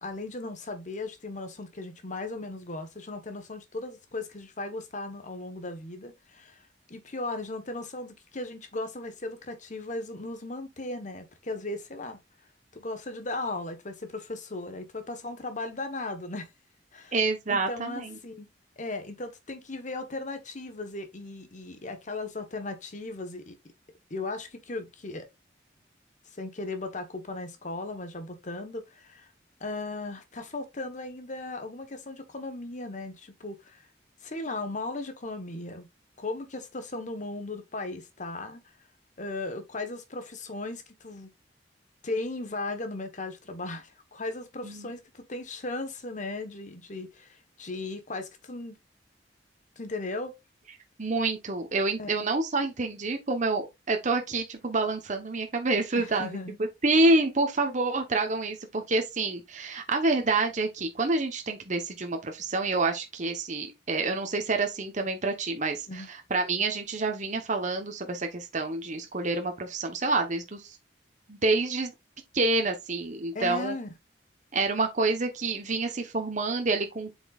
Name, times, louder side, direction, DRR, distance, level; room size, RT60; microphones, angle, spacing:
voice 1, 0.0-12.2 12.7-16.5 16.9-17.1 17.5-18.5 18.8-23.6 24.1-25.3 26.4-29.3 29.6-33.8 34.2-35.9 36.2-38.6 39.2-41.3 42.0-48.8 49.8-50.3 52.0-52.3 55.9-56.6 65.9-66.1 73.3-73.9, left 2 dB, 45° left, 1.2 m, -37 dB
voice 2, 17.1-18.2 44.6-44.9 51.0-56.4 56.8-70.8 71.3-71.9 72.3-73.7 74.5-77.2, right 3 dB, 45° right, 1.1 m, -28 dB
7.8 x 5.3 x 2.4 m
head